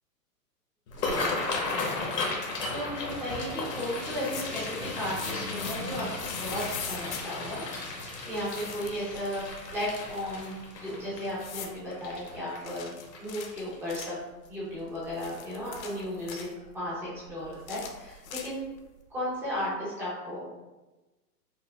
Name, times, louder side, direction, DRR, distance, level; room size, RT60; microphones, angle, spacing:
sound 1, 0.9-14.0 14.5-14.7 15.1-15.5 15.9-16.0 17.3-17.5 17.8-17.9 18.4-18.5, left 3 dB, 80° left, 1.3 m, -35 dB
voice 1, 1.0-2.2 2.7-7.6 8.2-9.4 9.7-12.9 13.2-14.2 14.5-18.6 19.1-20.4, equal, 5° right, -8 dB, 0.4 m, -35 dB
sound 2, 4.1-4.6 5.1-7.3 8.4-9.0 9.3-10.6 11.4-11.8 12.6-14.2 14.9-16.5 17.5-18.8, left 7 dB, 55° left, 0.7 m, -41 dB
6.0 x 2.0 x 2.2 m, 1.1 s
hypercardioid pair, 130°, 48 cm